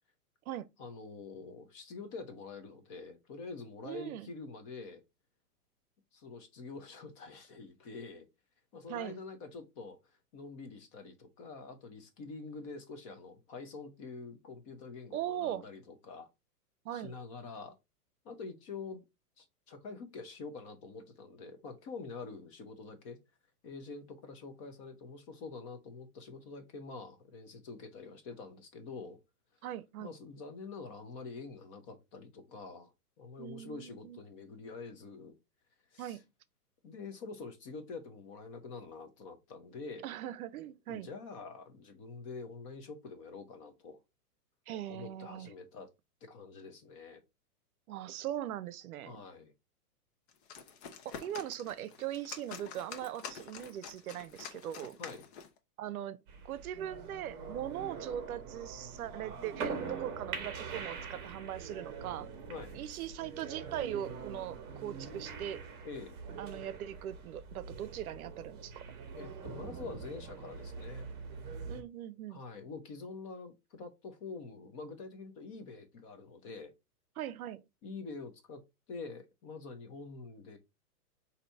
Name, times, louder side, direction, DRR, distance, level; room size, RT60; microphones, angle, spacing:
voice 1, 0.8-5.0 6.1-8.3 8.7-16.3 16.9-17.8 18.2-19.0 19.4-23.2 23.6-29.2 30.0-35.3 35.9-36.2 36.8-40.1 40.9-44.0 44.9-45.9 46.2-47.2 49.0-49.5 55.0-55.3 62.5-62.8 65.8-66.2 69.1-71.1 72.3-76.7 77.8-78.6 78.9-80.6, left 4 dB, 20° left, 0.5 m, -46 dB
voice 2, 3.8-4.3 8.9-9.2 15.1-15.6 16.8-17.1 29.6-30.1 33.4-34.2 36.0-36.2 40.0-41.1 44.7-45.5 47.9-49.2 51.0-55.0 55.8-62.3 62.7-65.6 66.4-69.0 71.7-72.4 77.2-77.6, right 11 dB, 65° right, 0.7 m, -40 dB
sound 1, 50.3-55.6, left 6 dB, 45° left, 0.9 m, -47 dB
sound 2, 56.3-71.8, right 5 dB, 20° right, 1.0 m, -44 dB
3.9 x 2.8 x 4.4 m
hypercardioid pair, 145°, 47 cm